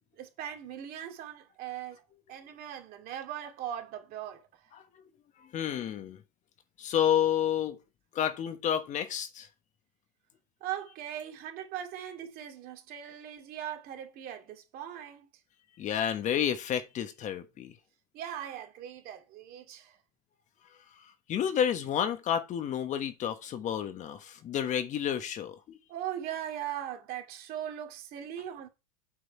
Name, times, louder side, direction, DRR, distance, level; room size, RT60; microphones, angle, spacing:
voice 1, 0.2-2.0 2.3-4.5 10.6-15.3 18.1-20.0 25.9-28.7, right 10 dB, 50° right, 2.3 m, -39 dB
voice 2, 4.7-5.0 5.4-6.2 6.8-7.8 8.1-9.5 15.8-17.8 20.9-25.8, left 9 dB, 40° left, 1.2 m, -30 dB
8.6 x 5.0 x 4.6 m
hypercardioid pair, 95°, 20 cm